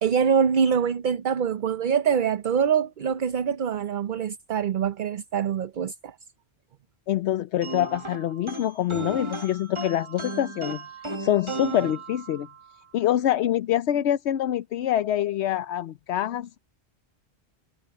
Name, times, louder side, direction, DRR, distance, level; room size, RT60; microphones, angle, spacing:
voice 1, 0.0-6.2, right 7 dB, 55° right, 0.7 m, -24 dB
voice 2, 7.1-10.8 11.2-12.5 12.9-16.6, left 12 dB, 80° left, 0.9 m, -25 dB
sound 1, 7.6-12.7, right 2 dB, 25° right, 1.5 m, -35 dB
omnidirectional pair, 1.1 m